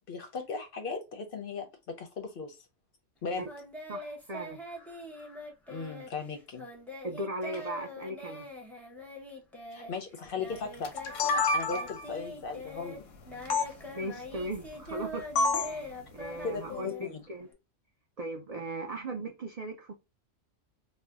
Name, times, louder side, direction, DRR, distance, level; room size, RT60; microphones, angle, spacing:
voice 1, 0.1-2.6 3.2-3.4 5.7-6.6 9.7-10.9 11.5-13.0 16.4-17.2, left 4 dB, 60° left, 0.6 m, -37 dB
Singing, 3.4-11.4 11.7-17.5, left 1 dB, ahead, 0.4 m, -43 dB
voice 2, 3.9-4.6 7.0-8.5 13.9-15.3 15.5-17.5 18.2-19.9, right 1 dB, 70° right, 0.3 m, -38 dB
sound 1, 10.8-12.1 13.5-13.7 15.4-15.8, left 3 dB, 90° left, 1.0 m, -27 dB
2.6 x 2.1 x 3.4 m
omnidirectional pair, 1.3 m